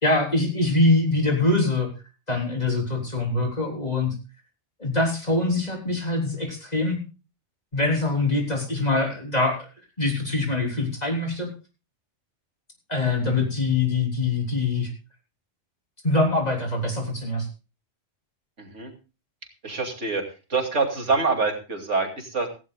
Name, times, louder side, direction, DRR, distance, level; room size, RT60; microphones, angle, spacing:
voice 1, 0.0-1.9 2.3-4.1 4.8-7.0 7.7-9.7 10.0-11.5 12.9-14.9 16.0-17.5, left 2 dB, 35° left, 0 dB, 3.9 m, -23 dB
voice 2, 18.6-18.9 19.6-20.2 20.5-22.5, right 4 dB, 85° right, 3 dB, 3.0 m, -25 dB
17.0 x 15.5 x 2.3 m, 0.31 s
omnidirectional pair, 1.2 m